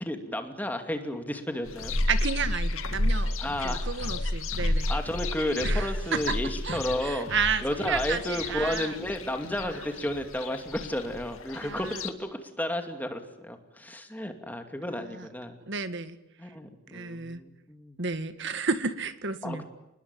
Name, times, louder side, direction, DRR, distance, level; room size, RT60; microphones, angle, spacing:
voice 1, 0.1-1.9 3.4-4.1 4.9-7.3 7.6-15.6 16.4-18.0 19.4-19.7, left 1 dB, 10° left, 6 dB, 2.5 m, -32 dB
sound 1, 1.7-12.1, left 1 dB, 70° left, 2.2 m, -31 dB
voice 2, 2.1-3.4 3.6-4.9 5.6-6.4 6.6-9.0 11.6-12.0 15.1-15.3 15.7-16.2 16.9-17.4 18.0-19.6, right 5 dB, 55° right, 11 dB, 1.8 m, -32 dB
29.0 x 20.5 x 9.1 m, 0.90 s
head